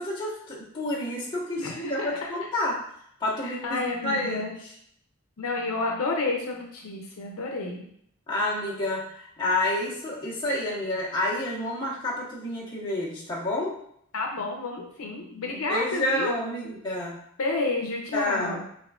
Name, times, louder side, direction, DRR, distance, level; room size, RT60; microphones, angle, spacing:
voice 1, 0.0-2.8 3.2-4.4 8.3-13.7 15.7-17.1 18.1-18.6, left 1 dB, 20° left, -7 dB, 1.2 m, -29 dB
voice 2, 1.6-2.3 3.4-4.5 5.4-7.9 14.1-16.3 17.4-18.6, left 3 dB, 85° left, 1 dB, 0.6 m, -30 dB
5.9 x 2.6 x 2.4 m, 0.68 s
head